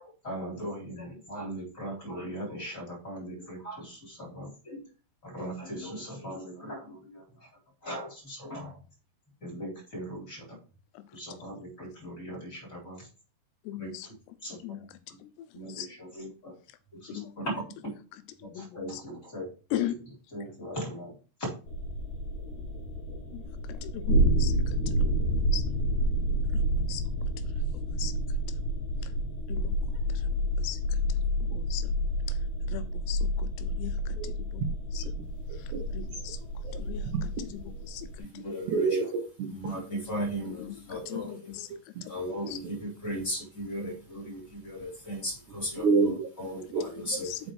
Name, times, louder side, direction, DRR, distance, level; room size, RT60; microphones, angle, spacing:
voice 1, 0.0-4.9 5.2-7.5 7.8-8.8 9.4-10.6 11.1-13.1 13.8-14.1 14.4-14.6 15.5-16.5 16.9-17.9 18.5-19.5 19.8-19.9 20.3-21.5 38.2-39.2 39.5-41.6 42.1-47.3, equal, 20° left, 3.7 m, -38 dB
voice 2, 13.7-14.1 14.6-14.8 15.2-15.3 15.7-15.9 17.1-17.3 18.4-19.0 19.7-20.0 23.3-23.4 23.7-24.5 25.3-25.7 26.5-26.6 26.9-27.0 28.0-28.1 29.5-29.7 30.6-30.8 31.5-31.9 32.7-34.2 34.5-34.6 34.9-35.0 35.9-36.4 36.7-37.6 37.9-38.1 38.3-38.4 40.6-41.7 42.0-42.1 42.5-42.6 47.0-47.4, left 12 dB, 85° left, 2.8 m, -38 dB
sound 1, 21.7-38.2, equal, 50° left, 3.1 m, -29 dB
voice 3, 35.2-35.8 36.6-36.7 37.4-37.5 38.7-39.5 42.0-42.1 42.6-42.7 45.8-46.3 46.7-46.8, right 4 dB, 90° right, 1.7 m, -28 dB
6.7 x 5.2 x 4.8 m
omnidirectional pair, 4.8 m